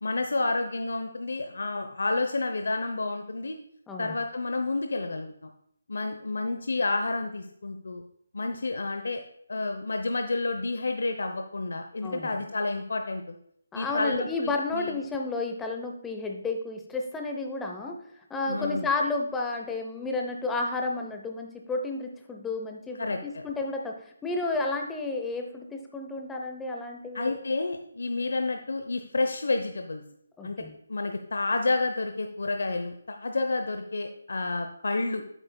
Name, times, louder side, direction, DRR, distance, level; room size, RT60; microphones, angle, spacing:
voice 1, 0.0-3.6 4.0-5.5 5.9-8.0 8.3-9.2 9.5-13.3 13.7-15.0 18.5-18.9 23.0-23.4 27.1-30.0 30.4-30.6 30.9-35.2, left 3 dB, 70° left, 5 dB, 0.7 m, -30 dB
voice 2, 12.0-12.4 13.7-27.4 30.4-30.8, left 3 dB, 5° left, 2 dB, 0.7 m, -32 dB
8.8 x 8.2 x 2.2 m, 0.69 s
figure-of-eight pair, 160°, 0 cm